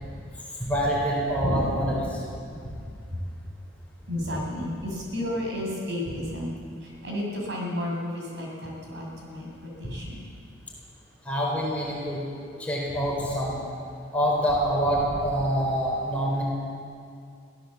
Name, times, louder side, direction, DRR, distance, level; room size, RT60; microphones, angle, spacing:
voice 1, 0.6-2.2 2.6-2.7 9.8-9.9 11.2-12.2 12.6-13.5 14.1-16.4, equal, 5° left, -4 dB, 4.6 m, -26 dB
voice 2, 4.1-6.5 6.8-10.2, left 1 dB, 60° right, -2 dB, 6.0 m, -32 dB
22.0 x 16.0 x 7.4 m, 2.4 s
head